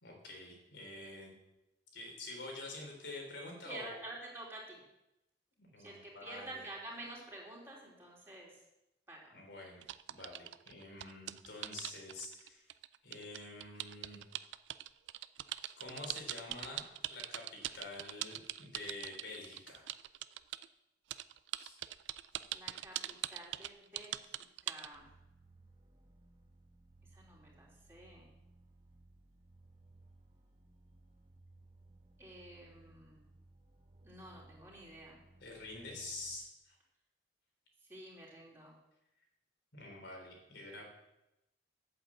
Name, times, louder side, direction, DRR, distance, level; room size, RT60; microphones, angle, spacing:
voice 1, 0.0-1.3 1.9-3.9 5.6-6.6 9.3-9.8 10.1-12.7 13.0-14.2 15.8-19.8 21.6-21.8 35.4-36.8 39.7-40.9, left 2 dB, 75° left, 0 dB, 3.8 m, -47 dB
voice 2, 3.6-4.8 5.8-8.6 9.1-9.2 22.5-25.1 27.1-28.3 32.2-33.2 34.0-35.2 37.9-38.7, right 2 dB, 15° right, -4 dB, 3.4 m, -49 dB
sound 1, 9.8-20.7 21.1-24.9, right 13 dB, 85° right, 0.4 m, -41 dB
sound 2, 24.9-36.4, right 2 dB, 30° right, 1.2 m, -62 dB
8.8 x 7.8 x 7.6 m, 0.91 s
head